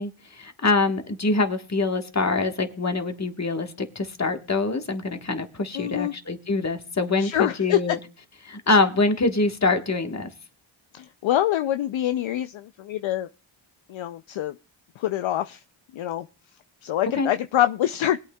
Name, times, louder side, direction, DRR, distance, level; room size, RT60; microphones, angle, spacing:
voice 1, 0.0-8.0 8.4-10.3 17.2-17.3, left 3 dB, 30° left, 1.5 m, -24 dB
voice 2, 5.7-6.1 7.2-8.0 10.9-13.3 13.9-14.6 15.0-15.6 15.9-16.3 16.8-18.2, left 12 dB, 65° left, 0.5 m, -25 dB
21.0 x 8.4 x 2.3 m
cardioid pair, 55°, 50 cm